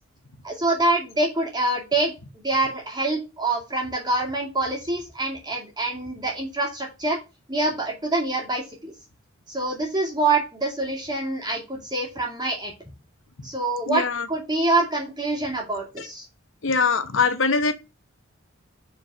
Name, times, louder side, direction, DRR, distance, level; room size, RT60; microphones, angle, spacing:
voice 1, 0.4-2.1 2.4-7.2 7.5-8.9 9.5-12.7 13.4-16.2, right 2 dB, 20° right, 2.4 m, -25 dB
voice 2, 13.9-14.3 16.6-17.7, left 4 dB, 60° left, 1.0 m, -22 dB
5.1 x 4.4 x 6.2 m
head